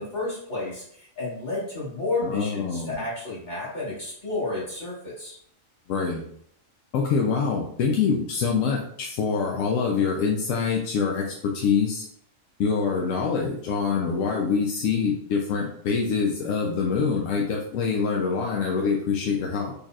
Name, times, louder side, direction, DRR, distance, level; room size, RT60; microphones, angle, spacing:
voice 1, 0.0-5.4, left 2 dB, 35° left, -8 dB, 1.5 m, -31 dB
voice 2, 2.2-3.0 5.9-6.2 6.9-12.1 12.6-19.7, left 5 dB, 75° left, -1 dB, 1.0 m, -25 dB
4.1 x 3.3 x 2.4 m, 0.67 s
omnidirectional pair, 1.4 m